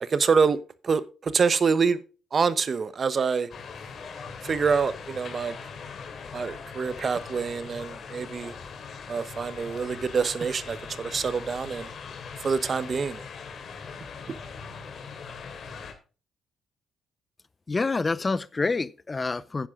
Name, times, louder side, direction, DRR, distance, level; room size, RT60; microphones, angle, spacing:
voice 1, 0.0-0.6 0.8-2.0 2.3-3.5 4.4-5.6 6.3-8.5 9.1-11.9 12.4-13.2 14.3-14.4, right 5 dB, 40° right, 0.9 m, -26 dB
sound 1, 3.5-15.9, left 5 dB, 55° left, 2.7 m, -41 dB
voice 2, 17.7-19.7, left 3 dB, 25° left, 0.5 m, -27 dB
10.5 x 9.7 x 3.7 m
cardioid pair, 90°, 0 cm